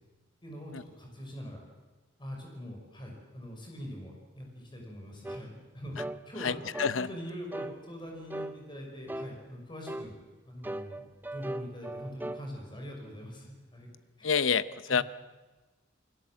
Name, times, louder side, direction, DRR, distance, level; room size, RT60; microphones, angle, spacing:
voice 1, 0.4-1.6 2.2-10.2 10.5-11.0 11.3-13.9 14.2-14.3 14.9-15.0, equal, 25° left, 1 dB, 5.8 m, -43 dB
sound 1, 5.2-5.4 6.0-6.2 6.7-7.0 7.5-7.8 8.3-8.6 9.1-9.3 9.9-10.1 10.6-12.4, right 1 dB, 10° right, 0.7 m, -38 dB
voice 2, 6.4-7.1 14.2-15.0, left 6 dB, 85° left, 15 dB, 0.8 m, -28 dB
28.5 x 21.0 x 7.6 m, 1.2 s
head